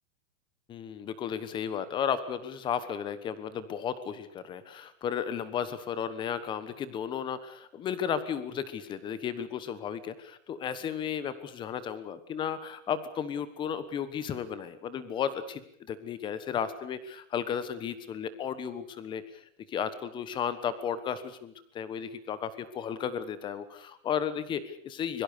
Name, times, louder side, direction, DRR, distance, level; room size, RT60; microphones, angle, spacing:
voice 1, 0.7-15.6 15.9-19.4 19.7-25.2, left 8 dB, 10° left, 14 dB, 1.2 m, -34 dB
26.0 x 22.5 x 6.8 m, 0.63 s
supercardioid pair, 175°, 39 cm